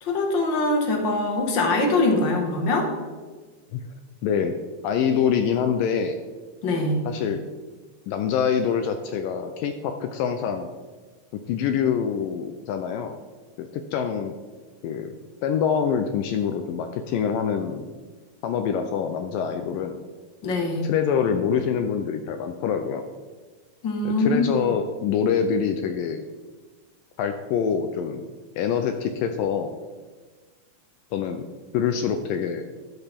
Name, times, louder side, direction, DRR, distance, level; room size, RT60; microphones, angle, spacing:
voice 1, 0.0-2.9 6.6-7.0 20.4-20.9 23.8-24.6, left 2 dB, 50° left, 2 dB, 1.5 m, -23 dB
voice 2, 4.2-4.5 4.8-6.2 7.1-7.4 8.1-10.7 11.3-13.2 13.6-14.4 14.8-15.1 15.4-17.9 18.4-20.0 20.8-23.1 24.0-26.2 27.2-28.3 28.6-29.7 31.1-31.5 31.7-32.6, left 7 dB, 80° left, 7 dB, 2.1 m, -25 dB
12.5 x 10.0 x 3.6 m, 1.4 s
omnidirectional pair, 4.4 m